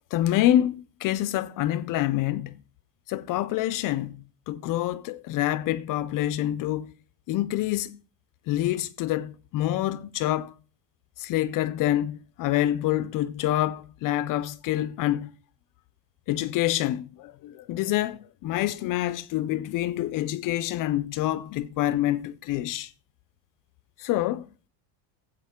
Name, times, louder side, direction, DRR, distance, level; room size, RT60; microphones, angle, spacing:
voice 1, 0.1-2.6 3.1-6.9 7.3-8.0 8.5-10.5 11.2-15.3 16.3-22.9 24.0-24.7, left 13 dB, 45° left, 0.4 m, -27 dB
15.0 x 7.9 x 3.6 m
cardioid pair, 145°, 45 cm